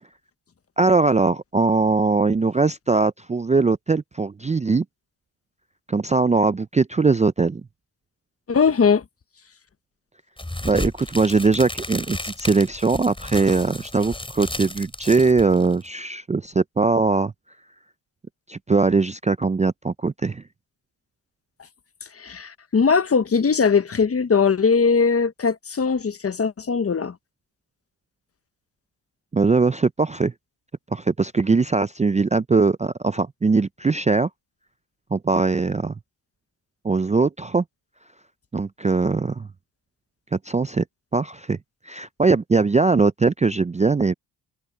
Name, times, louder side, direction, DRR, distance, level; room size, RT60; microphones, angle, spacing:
voice 1, 0.8-4.8 5.9-7.6 10.6-17.3 18.5-20.4 29.3-30.3 30.9-34.3 35.1-35.9 36.8-37.6 38.5-39.5 40.3-40.8 41.1-41.6 41.8-44.1, right 4 dB, 15° right, 0.5 m, -21 dB
voice 2, 8.5-9.0 22.2-27.1, left 5 dB, 35° left, 1.0 m, -20 dB
sound 1, 10.4-15.9, left 1 dB, 10° left, 5.5 m, -33 dB
cardioid pair, 65°, 42 cm